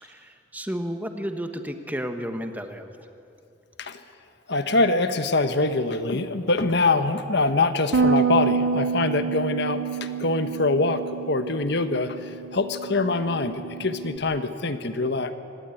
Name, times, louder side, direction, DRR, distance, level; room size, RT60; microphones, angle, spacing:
voice 1, 0.0-2.9, equal, 10° right, 6 dB, 1.4 m, -32 dB
voice 2, 4.5-12.2 12.5-15.3, left 3 dB, 60° left, 9 dB, 1.4 m, -24 dB
Bass guitar, 7.9-14.2, right 5 dB, 80° right, 0.9 m, -28 dB
25.0 x 18.5 x 9.3 m, 2.7 s
head